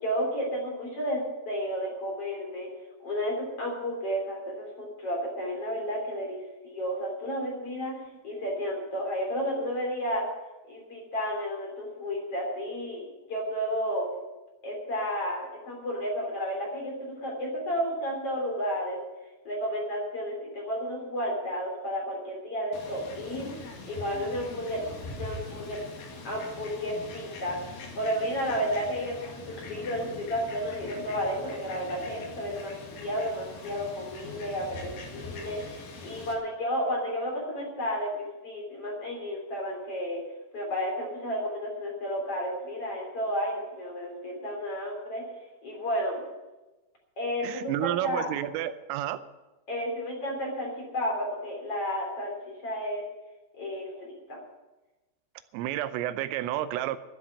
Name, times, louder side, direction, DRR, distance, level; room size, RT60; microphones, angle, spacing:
voice 1, 0.0-2.7 3.0-10.3 10.7-13.0 13.3-14.1 14.6-19.0 19.4-23.5 23.8-25.8 26.2-40.2 40.5-45.2 45.6-46.2 47.2-48.3 49.7-52.3 52.6-53.0 53.6-54.4, equal, 30° left, -1 dB, 3.8 m, -32 dB
Fowl, 22.7-36.3, left 3 dB, 55° left, 3.6 m, -43 dB
voice 2, 47.4-49.2 55.5-57.0, right 13 dB, 90° right, 13 dB, 3.4 m, -30 dB
13.0 x 7.8 x 9.9 m, 1.1 s
omnidirectional pair, 5.7 m